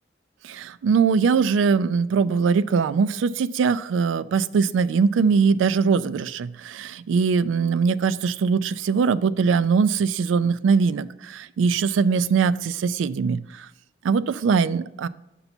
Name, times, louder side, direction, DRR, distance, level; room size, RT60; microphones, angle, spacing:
voice 1, 0.4-13.7 14.0-15.1, right 5 dB, 90° right, 16 dB, 0.3 m, -21 dB
6.9 x 5.4 x 4.3 m, 0.90 s
head